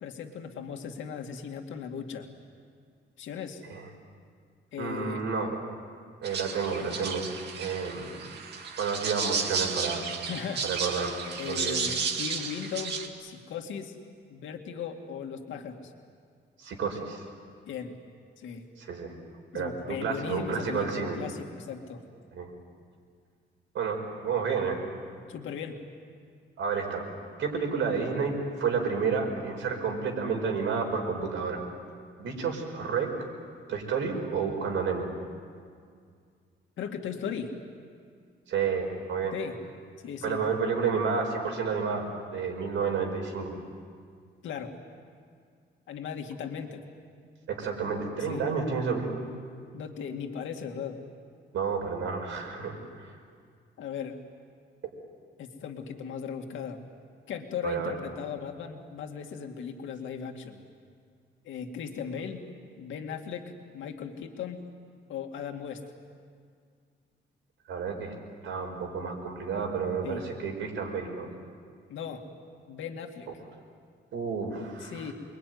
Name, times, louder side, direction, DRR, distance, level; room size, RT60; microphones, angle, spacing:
voice 1, 0.0-2.3 3.2-3.6 4.7-5.2 10.2-10.6 11.4-14.0 14.3-15.9 17.7-17.9 18.4-18.6 19.5-22.0 25.3-25.8 36.8-37.5 39.3-39.6 40.0-40.4 44.4-44.7 45.9-46.8 48.3-48.4 49.7-51.0 53.8-54.2 55.4-56.8 57.3-60.6 61.4-62.4 62.8-64.6 65.1-65.8 70.0-70.3 71.9-72.2 72.7-73.3 74.8-75.1, left 7 dB, 85° left, 3 dB, 2.3 m, -37 dB
voice 2, 4.8-5.6 6.2-7.3 7.6-8.3 8.8-10.1 10.6-11.2 11.5-11.8 16.6-17.2 18.8-19.1 19.5-21.2 22.3-22.5 23.7-24.8 26.6-27.1 27.4-31.6 32.2-33.1 33.7-35.1 38.5-39.4 40.2-43.6 47.5-49.3 51.5-53.1 57.6-57.9 67.7-68.1 68.4-71.3 74.1-75.1, right 5 dB, 85° right, 3 dB, 5.3 m, -30 dB
sound 1, 6.2-13.1, right 5 dB, 60° right, 2.3 m, -33 dB
28.0 x 22.5 x 9.5 m, 2.1 s
cardioid pair, 170°, 19 cm